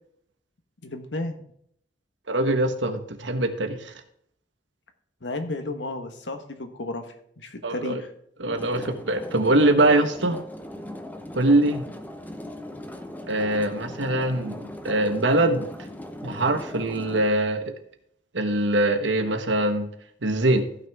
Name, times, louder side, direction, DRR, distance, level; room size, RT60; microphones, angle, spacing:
voice 1, 0.8-1.4 5.2-8.1, left 2 dB, 75° left, 7 dB, 1.4 m, -33 dB
voice 2, 2.3-3.9 7.6-8.0 8.4-10.4 11.3-11.9 13.3-15.6 16.2-17.7 18.3-19.9 20.2-20.7, right 1 dB, 85° right, 7 dB, 1.4 m, -23 dB
sound 1, 8.5-17.2, left 1 dB, 10° left, 0.9 m, -39 dB
15.0 x 6.3 x 3.6 m, 0.69 s
head